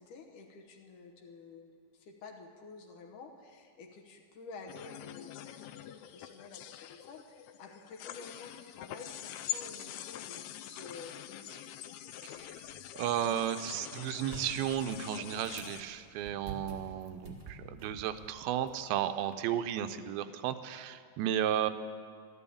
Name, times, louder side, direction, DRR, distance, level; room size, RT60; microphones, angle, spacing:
voice 1, 0.0-11.7, left 4 dB, 65° left, 2 dB, 2.4 m, -50 dB
sound 1, 4.7-15.8, left 12 dB, 90° left, 2.6 m, -45 dB
sound 2, 12.3-19.3, right 3 dB, 35° right, 0.6 m, -50 dB
voice 2, 13.0-21.7, right 10 dB, 90° right, 10 dB, 2.6 m, -33 dB
13.0 x 12.5 x 8.4 m, 2.1 s
omnidirectional pair, 4.3 m